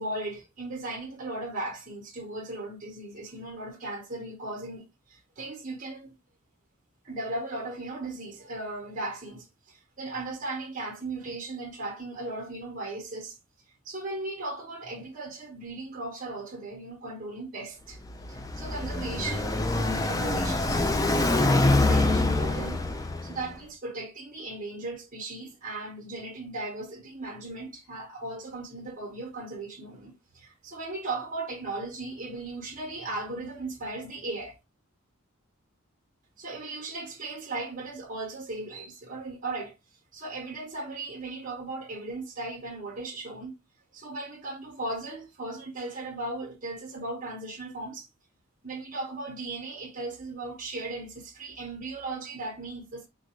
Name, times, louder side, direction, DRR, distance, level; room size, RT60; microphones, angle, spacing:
voice 1, 0.0-6.1 7.0-13.4 13.8-18.0 18.3-21.4 21.9-34.6 36.4-39.7 40.1-43.6 43.9-48.1 48.6-53.1, right 2 dB, 40° right, 1.0 m, -37 dB
Car passing by, 17.9-23.5, left 2 dB, 15° left, 0.3 m, -25 dB
3.7 x 2.5 x 3.0 m
head